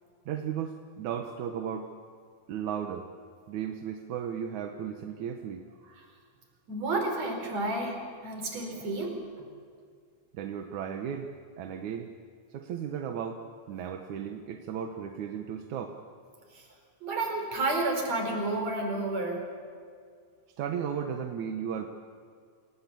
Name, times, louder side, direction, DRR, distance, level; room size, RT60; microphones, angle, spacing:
voice 1, 0.3-1.9 2.5-3.1 3.5-5.7 10.3-11.3 11.6-12.1 12.5-16.0 20.6-21.9, right 8 dB, 65° right, 4 dB, 2.2 m, -35 dB
voice 2, 6.7-9.5 16.5-16.6 17.0-19.4, right 2 dB, 45° right, 2 dB, 5.6 m, -31 dB
27.5 x 18.5 x 8.6 m, 2.1 s
omnidirectional pair, 4.4 m